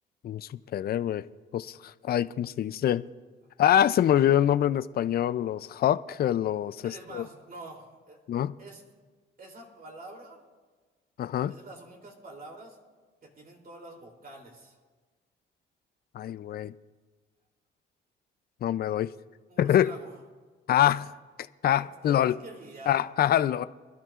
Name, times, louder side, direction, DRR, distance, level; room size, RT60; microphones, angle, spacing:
voice 1, 0.2-1.2 1.5-3.0 3.6-7.2 8.3-8.5 11.2-11.5 16.1-16.7 18.6-19.1 19.6-19.9 20.7-21.1 21.6-22.4 22.9-23.7, left 11 dB, 50° left, 14 dB, 0.4 m, -25 dB
voice 2, 6.8-8.2 8.6-8.8 9.4-10.4 11.4-12.8 13.2-14.8 19.5-20.2 21.8-23.0, right 2 dB, 45° right, 0 dB, 3.1 m, -46 dB
24.5 x 12.0 x 2.5 m, 1.4 s
cardioid pair, 90°, 20 cm